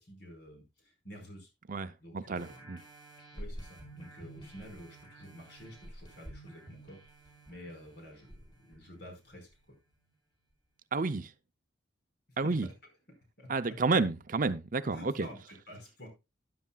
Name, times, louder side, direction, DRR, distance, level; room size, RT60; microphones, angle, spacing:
voice 1, 0.0-1.5 2.0-2.7 3.3-9.8 12.3-12.7 13.4-13.8 14.9-16.1, equal, 55° left, 4.8 m, -50 dB
voice 2, 1.7-2.8 10.9-11.3 12.4-12.7 13.5-15.3, right 3 dB, 45° right, 0.6 m, -30 dB
sound 1, 2.4-9.5 10.1-10.2, right 1 dB, 25° left, 5.7 m, -50 dB
13.0 x 10.5 x 2.3 m
head